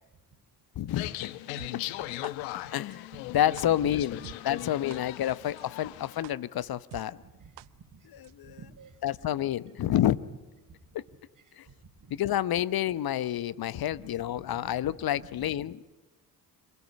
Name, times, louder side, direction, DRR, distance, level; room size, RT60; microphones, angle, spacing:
voice 1, 0.8-1.1 1.7-1.8 2.2-2.3 2.7-4.2 4.4-7.2 8.1-8.6 9.0-10.2 10.9-11.0 11.6-11.7 12.1-15.9, left 12 dB, 50° left, 17 dB, 1.0 m, -29 dB
sound 1, 0.9-6.2, left 16 dB, 70° left, 1.1 m, -39 dB
sound 2, 1.6-1.7 2.2-2.3 2.9-3.0 3.6-3.7 4.2-4.3 4.9-5.0 5.6-5.7 6.2-6.3 6.9-7.0 7.6-7.7 8.2-8.3, right 18 dB, 60° right, 0.8 m, -45 dB
voice 2, 7.2-8.1 8.4-9.0 9.6-10.0 10.7-10.8 11.5-11.6 12.0-12.1 14.0-14.1 14.4-15.3, right 5 dB, 40° right, 8 dB, 5.2 m, -52 dB
26.5 x 17.0 x 9.5 m, 1.2 s
hypercardioid pair, 50°, 48 cm